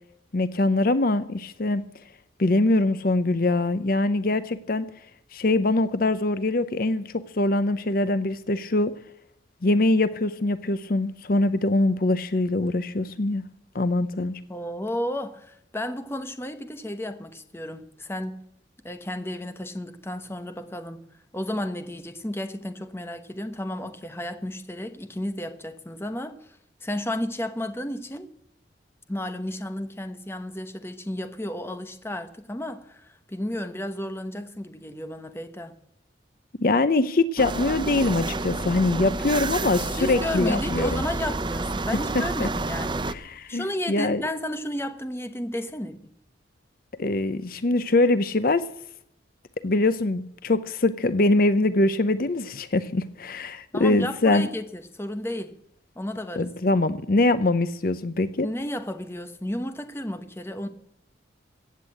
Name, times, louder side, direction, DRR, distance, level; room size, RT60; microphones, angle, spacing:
voice 1, 0.3-1.9 2.4-4.9 5.3-8.9 9.6-13.4 13.7-14.4 36.6-41.0 42.4-42.5 43.1-44.2 47.0-48.6 49.6-54.5 56.4-58.5, left 2 dB, 50° left, 0.7 m, -23 dB
voice 2, 14.5-18.4 18.8-21.0 21.3-28.3 29.1-35.7 40.0-43.1 43.5-46.0 53.7-55.6 56.0-56.5 58.4-60.7, left 1 dB, 15° left, 1.0 m, -32 dB
sound 1, 37.4-43.1, right 2 dB, 25° right, 0.6 m, -29 dB
16.0 x 8.3 x 8.5 m
head